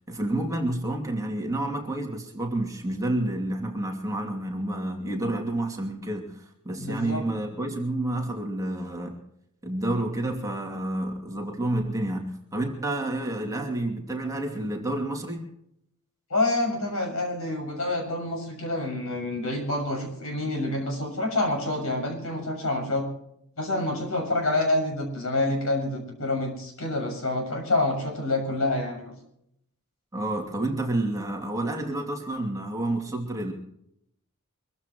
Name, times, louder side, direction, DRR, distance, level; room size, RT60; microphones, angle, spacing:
voice 1, 0.1-9.2 9.6-15.5 30.1-33.5, right 1 dB, 15° right, 1 dB, 2.6 m, -29 dB
voice 2, 6.8-7.2 16.3-23.1 23.6-29.1, left 2 dB, 65° left, 2 dB, 6.7 m, -27 dB
24.5 x 15.0 x 3.1 m, 0.76 s
head